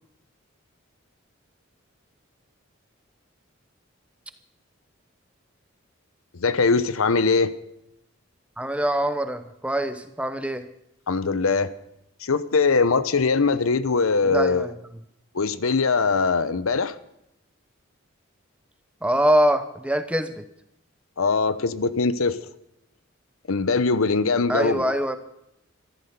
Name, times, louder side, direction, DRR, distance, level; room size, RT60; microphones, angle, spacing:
voice 1, 6.3-7.5 11.1-11.7 12.2-14.7 15.3-17.0 21.2-22.4 23.5-24.8, left 4 dB, 85° left, 15 dB, 0.8 m, -21 dB
voice 2, 8.6-10.7 14.2-14.7 19.0-20.4 24.5-25.2, equal, 5° right, 11 dB, 0.8 m, -24 dB
14.0 x 13.0 x 6.8 m, 0.82 s
head